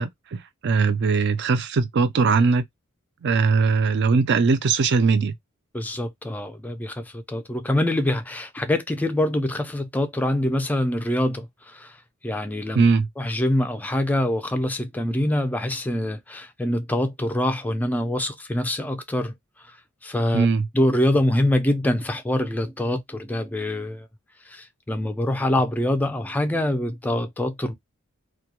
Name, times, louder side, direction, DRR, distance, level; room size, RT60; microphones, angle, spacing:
voice 1, 0.0-2.7 3.2-5.3 12.7-13.1 20.3-20.7, right 4 dB, 55° right, 0.4 m, -20 dB
voice 2, 5.7-12.0 12.2-12.9 13.2-19.4 19.6-19.8 20.0-20.5 20.7-24.1 24.5-27.7, left 1 dB, 10° left, 0.4 m, -25 dB
2.3 x 2.1 x 2.8 m
head